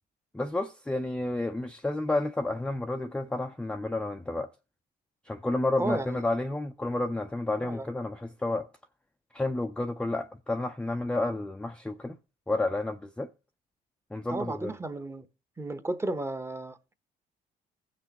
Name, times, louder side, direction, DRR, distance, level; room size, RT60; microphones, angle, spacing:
voice 1, 0.3-4.5 5.3-8.7 9.3-12.2 12.5-13.3 14.1-14.7, left 2 dB, 5° left, 0.4 m, -30 dB
voice 2, 5.8-6.2 7.6-7.9 14.3-15.3 15.6-16.9, right 2 dB, 15° right, 0.8 m, -33 dB
15.5 x 6.2 x 2.8 m
cardioid pair, 110°, 17 cm